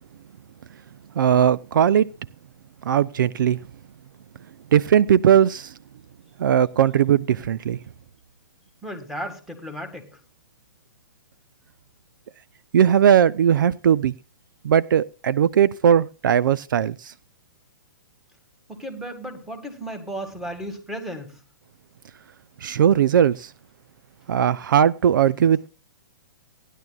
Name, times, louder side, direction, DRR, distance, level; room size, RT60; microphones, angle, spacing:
voice 1, 1.2-2.1 2.8-3.6 4.7-5.7 6.4-7.8 12.7-14.1 14.6-17.1 22.6-23.5 24.3-25.7, right 9 dB, 70° right, 0.5 m, -18 dB
voice 2, 8.8-10.1 18.7-21.4, equal, 5° right, 1.9 m, -34 dB
18.0 x 11.0 x 2.3 m
hypercardioid pair, 145°, 11 cm